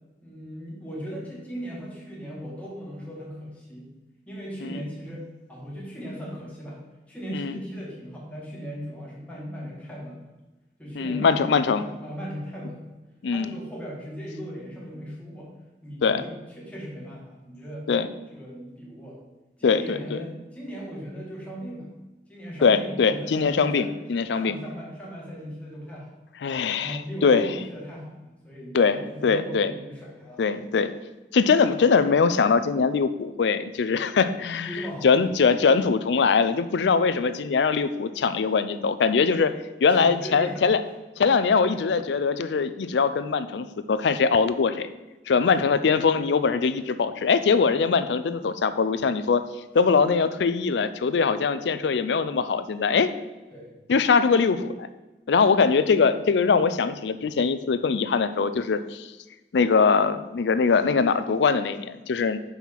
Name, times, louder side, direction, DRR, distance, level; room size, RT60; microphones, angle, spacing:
voice 1, 0.2-3.9 4.3-5.2 5.5-6.8 7.1-10.3 10.8-13.0 13.3-15.5 15.8-17.9 18.3-19.2 19.6-21.9 22.3-23.9 24.3-26.1 26.7-30.4 34.6-35.3 39.9-40.6 45.4-45.7 49.8-49.9 53.5-53.8, equal, 10° left, -5 dB, 1.7 m, -38 dB
voice 2, 7.3-7.6 11.0-11.9 13.2-13.5 16.0-16.2 17.9-18.1 19.6-20.2 22.6-24.5 26.4-27.5 28.7-29.7 30.4-30.9 31.3-34.7 35.0-39.5 39.8-40.8 41.2-44.9 45.3-49.4 49.7-53.1 53.9-54.9 55.3-59.1 59.5-62.4, left 5 dB, 85° left, 12 dB, 0.4 m, -22 dB
5.5 x 4.5 x 5.8 m, 1.1 s
head